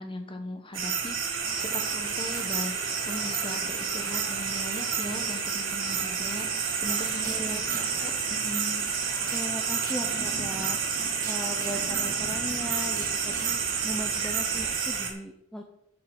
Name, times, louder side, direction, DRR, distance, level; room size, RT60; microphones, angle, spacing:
voice 1, 0.0-8.9, left 1 dB, 25° left, 6 dB, 1.2 m, -39 dB
sound 1, 0.7-15.1, right 6 dB, 60° right, 2.2 m, -29 dB
sound 2, 1.4-14.8, left 2 dB, 40° left, 2.3 m, -43 dB
voice 2, 7.2-7.6 9.3-10.8 11.3-15.6, equal, 5° left, 2 dB, 0.7 m, -38 dB
sound 3, 7.2-8.1 9.3-9.5 9.8-10.1 11.2-11.9 13.0-13.6, right 6 dB, 40° right, 1.2 m, -45 dB
7.8 x 6.8 x 7.3 m, 0.76 s
head